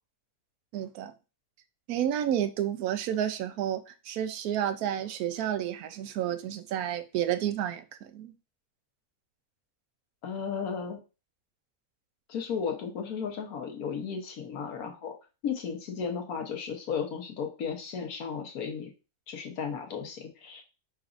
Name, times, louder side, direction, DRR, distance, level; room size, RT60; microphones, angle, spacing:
voice 1, 0.7-1.1 1.9-8.3, right 10 dB, 85° right, 1.1 m, -31 dB
voice 2, 10.2-11.0 12.3-15.1 15.4-18.9 19.3-20.6, left 6 dB, 80° left, 1.4 m, -34 dB
4.9 x 4.0 x 2.5 m
omnidirectional pair, 1.5 m